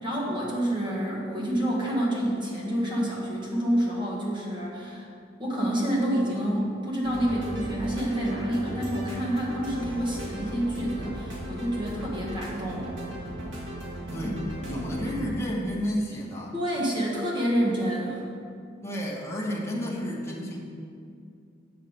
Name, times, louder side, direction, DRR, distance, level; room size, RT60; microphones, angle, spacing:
voice 1, 0.0-5.1 5.4-12.9 16.5-18.2, equal, 25° right, -4 dB, 1.4 m, -28 dB
sound 1, 7.0-15.2, right 1 dB, 75° right, 1.8 m, -36 dB
voice 2, 14.1-16.5 18.8-20.6, equal, 15° left, -3 dB, 1.1 m, -31 dB
8.0 x 5.6 x 5.1 m, 2.4 s
head